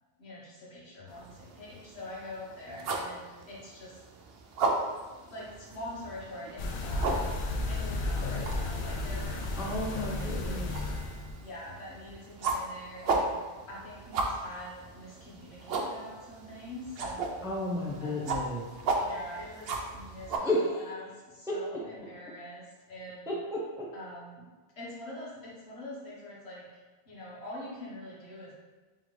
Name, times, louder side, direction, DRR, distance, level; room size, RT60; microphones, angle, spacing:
voice 1, 0.2-4.0 5.2-7.2 7.7-10.6 11.3-17.4 18.0-18.3 18.9-23.3 23.9-24.5 24.8-26.8 27.0-28.5, left 1 dB, 75° left, -5 dB, 1.4 m, -44 dB
sound 1, 1.1-20.4, right 3 dB, 70° right, 0.8 m, -36 dB
sound 2, 6.6-11.4, left 2 dB, 60° left, 0.7 m, -33 dB
voice 2, 9.6-10.6 17.4-18.6 20.4-20.8 23.3-23.9, left 1 dB, 5° right, -3 dB, 0.4 m, -32 dB
3.8 x 3.6 x 3.2 m, 1.3 s
omnidirectional pair, 1.1 m